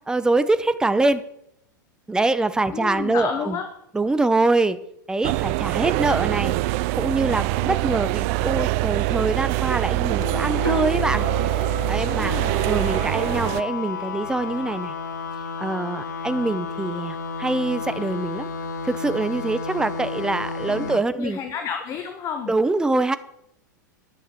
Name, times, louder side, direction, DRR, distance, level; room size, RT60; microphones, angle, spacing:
voice 1, 0.1-1.2 2.1-3.5 3.9-4.8 5.1-6.6 6.9-11.3 11.9-12.4 12.7-14.9 15.6-18.5 18.8-21.4 22.5-23.2, right 2 dB, 5° right, 13 dB, 0.8 m, -24 dB
voice 2, 2.7-3.7 12.2-12.5 20.7-22.5, left 7 dB, 30° left, 6 dB, 1.2 m, -31 dB
sound 1, 5.2-13.6, right 19 dB, 45° right, 0.4 m, -24 dB
sound 2, 10.2-21.0, left 5 dB, 65° left, 1.5 m, -32 dB
sound 3, 10.6-14.7, equal, 90° right, 0.8 m, -36 dB
11.0 x 7.2 x 7.0 m, 0.76 s
figure-of-eight pair, 90°, 10 cm